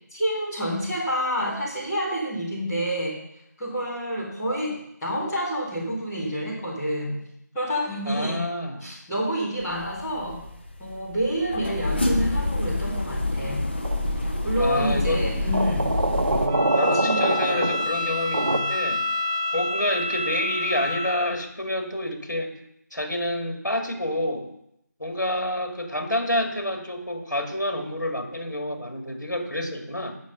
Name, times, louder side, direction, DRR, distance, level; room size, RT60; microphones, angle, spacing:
voice 1, 0.1-3.2 3.6-7.1 7.5-8.5 8.8-10.4 10.8-13.6 14.2-15.9 16.9-17.2, equal, 5° left, -10 dB, 1.5 m, -28 dB
voice 2, 8.1-8.8 14.6-15.3 16.3-19.0 19.5-22.5 22.9-24.5 25.0-30.1, left 1 dB, 70° left, 3 dB, 2.1 m, -28 dB
sound 1, 9.6-16.5, left 2 dB, 35° left, 0.8 m, -27 dB
sound 2, 13.8-14.2 15.5-18.6, right 2 dB, 50° right, 1.0 m, -25 dB
Bowed string instrument, 16.5-21.3, left 2 dB, 10° right, 0.7 m, -28 dB
8.3 x 6.4 x 5.4 m, 0.78 s
figure-of-eight pair, 170°, 10 cm